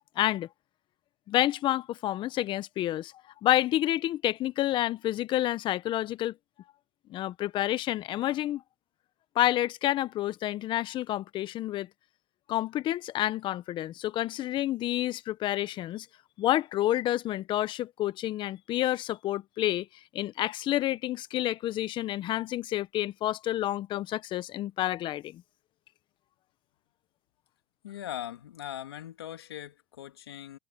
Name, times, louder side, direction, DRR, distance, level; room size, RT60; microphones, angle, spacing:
voice 1, 0.2-0.5 1.3-3.1 3.4-6.3 7.1-8.6 9.3-11.9 12.5-16.1 16.4-19.9 20.1-25.4, left 14 dB, 40° left, 1.0 m, -29 dB
voice 2, 27.8-30.6, left 12 dB, 90° left, 2.7 m, -40 dB
hypercardioid pair, 110°, 13 cm